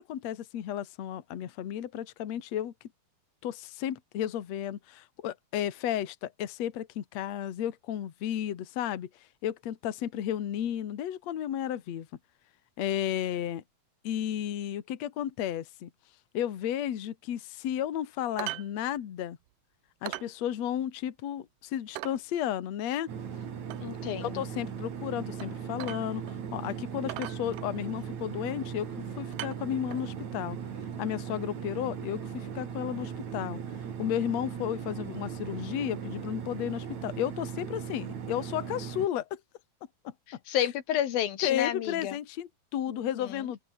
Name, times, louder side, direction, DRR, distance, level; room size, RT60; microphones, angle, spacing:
voice 1, 0.0-2.7 3.4-9.1 9.4-12.1 12.8-13.6 14.0-15.9 16.3-19.4 20.0-23.1 24.2-30.6 31.0-33.6 34.0-39.4 40.0-40.1 41.4-43.6, left 11 dB, 55° left, 2.6 m, -33 dB
sound 1, 18.4-18.7 19.0-19.1 19.5-19.6 20.1-20.3 20.8-20.9 21.3-21.4 22.0-22.2 23.7-23.8 25.4-25.5 25.8-26.4 26.6-26.7 27.1-28.0 28.8-29.0 29.3-30.1 31.1-31.2, right 17 dB, 75° right, 2.1 m, -40 dB
sound 2, 23.1-39.1, right 7 dB, 50° right, 3.7 m, -38 dB
voice 2, 23.8-24.4 40.3-42.2 42.9-43.5, left 11 dB, 80° left, 3.5 m, -31 dB
open air
omnidirectional pair, 4.2 m